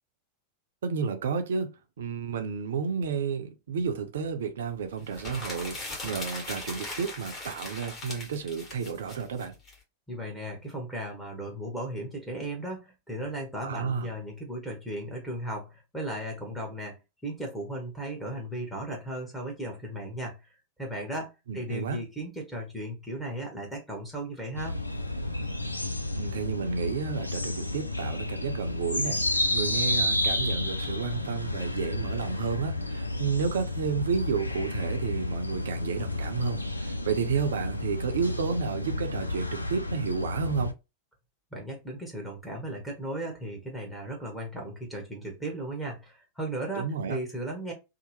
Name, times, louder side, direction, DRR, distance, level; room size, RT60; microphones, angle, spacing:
voice 1, 0.8-1.7 2.0-9.6 13.6-14.1 21.5-22.0 26.2-40.7 46.8-47.2, right 6 dB, 60° right, 0.5 m, -31 dB
sound 1, 5.0-9.7, left 2 dB, 25° left, 1.3 m, -39 dB
voice 2, 10.1-24.8 41.5-47.7, right 1 dB, 5° left, 1.0 m, -36 dB
sound 2, 24.6-40.7, left 1 dB, 85° left, 0.3 m, -31 dB
2.8 x 2.0 x 3.0 m
figure-of-eight pair, 90°, 0 cm